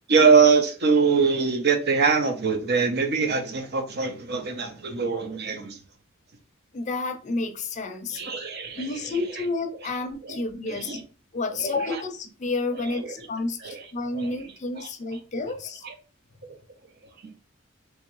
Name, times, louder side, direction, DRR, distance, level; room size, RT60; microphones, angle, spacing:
voice 1, 0.1-5.8 8.1-9.4 10.2-10.4 10.7-11.0 11.9-12.0 13.0-13.1 13.6-13.8 14.2-14.4 14.8-14.9 15.8-15.9, right 5 dB, 55° right, 6 dB, 0.7 m, -23 dB
voice 2, 6.7-8.2 8.8-11.0 11.3-15.8, left 3 dB, 35° left, 6 dB, 0.5 m, -30 dB
3.4 x 3.1 x 3.0 m, 0.37 s
head